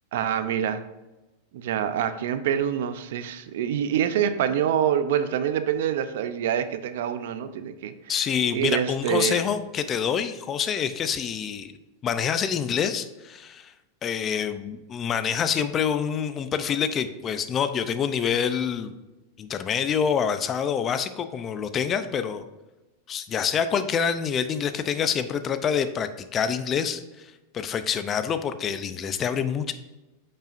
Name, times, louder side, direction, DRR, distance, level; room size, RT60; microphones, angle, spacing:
voice 1, 0.1-0.8 1.5-7.9 8.5-9.4, right 9 dB, 70° right, 11 dB, 0.6 m, -26 dB
voice 2, 8.1-11.7 12.0-13.7 14.0-18.9 19.4-22.4 23.1-27.3 27.5-29.7, left 7 dB, 30° left, 11 dB, 0.5 m, -26 dB
8.7 x 5.5 x 2.6 m, 1.1 s
hypercardioid pair, 120°, 0 cm